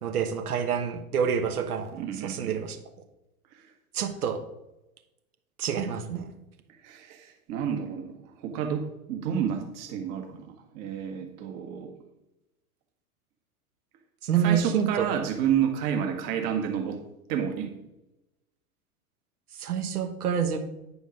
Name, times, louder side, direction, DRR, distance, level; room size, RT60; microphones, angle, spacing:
voice 1, 0.0-1.9 2.2-2.8 3.9-4.4 5.6-6.3 14.2-15.0 19.6-20.6, right 8 dB, 85° right, 7 dB, 1.3 m, -27 dB
voice 2, 2.0-2.5 3.5-3.7 6.8-11.9 14.4-17.0 17.3-17.7, right 8 dB, 45° right, 4 dB, 1.8 m, -30 dB
9.9 x 5.1 x 5.2 m, 0.94 s
hypercardioid pair, 105°, 44 cm